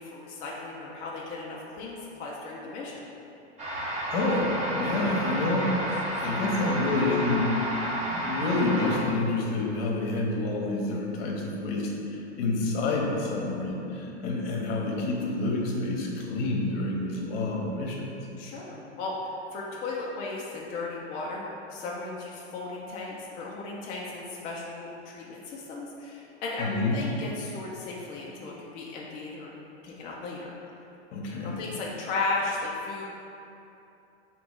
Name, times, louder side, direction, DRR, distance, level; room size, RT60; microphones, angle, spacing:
voice 1, 0.0-3.0 18.4-29.5 29.8-30.5 31.4-33.1, left 3 dB, 25° left, -4 dB, 0.4 m, -35 dB
sound 1, 3.6-9.0, right 1 dB, 20° right, 0.9 m, -31 dB
voice 2, 4.1-5.7 6.2-7.6 8.1-18.0 26.6-27.0 31.1-31.6, left 2 dB, 55° left, -1 dB, 0.9 m, -28 dB
3.9 x 3.0 x 3.6 m, 2.8 s
hypercardioid pair, 115°, 35 cm